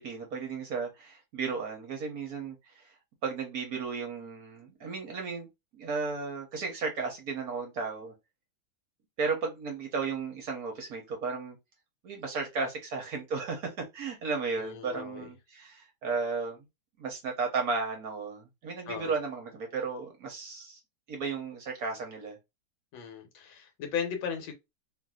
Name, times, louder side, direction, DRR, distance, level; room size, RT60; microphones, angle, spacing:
voice 1, 0.0-2.9 3.2-5.5 5.7-8.1 9.2-11.6 12.0-16.6 17.0-20.8 21.1-22.4, right 4 dB, 60° right, 1.1 m, -34 dB
voice 2, 14.6-15.3 18.9-19.1 22.9-24.5, left 7 dB, 80° left, 1.6 m, -36 dB
3.2 x 2.5 x 2.3 m
omnidirectional pair, 2.1 m